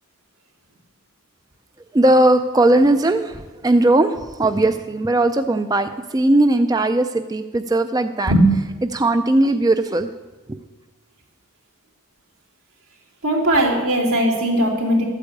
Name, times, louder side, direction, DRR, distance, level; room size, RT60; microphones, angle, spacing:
voice 1, 1.9-8.3 8.8-10.1 10.5-10.6, right 2 dB, 20° right, 9 dB, 0.4 m, -18 dB
voice 2, 13.2-15.0, right 1 dB, 90° right, -1 dB, 3.2 m, -18 dB
12.0 x 8.4 x 8.4 m, 1.2 s
head